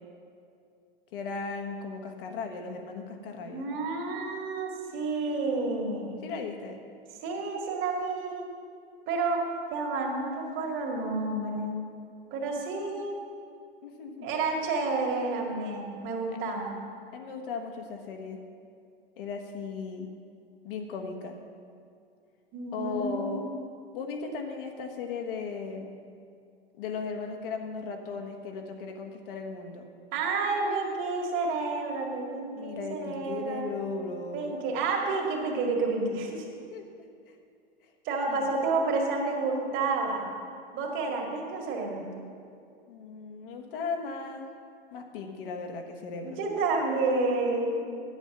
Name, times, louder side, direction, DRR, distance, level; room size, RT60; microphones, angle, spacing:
voice 1, 1.1-3.7 6.2-6.8 13.8-14.3 17.1-18.4 19.2-20.1 20.6-21.4 22.7-23.5 23.9-26.0 26.8-29.9 32.5-34.6 36.7-36.9 38.3-38.5 42.9-44.5 44.9-46.4, left 4 dB, 65° left, 3 dB, 1.4 m, -37 dB
voice 2, 3.4-6.3 7.2-8.5 9.1-9.4 9.7-11.8 12.3-13.2 14.2-16.8 22.5-23.4 30.1-33.8 34.3-36.4 38.0-40.3 40.7-42.0 46.2-47.8, right 3 dB, 40° right, 0 dB, 2.1 m, -30 dB
9.6 x 8.1 x 5.9 m, 2.4 s
hypercardioid pair, 100°, 30 cm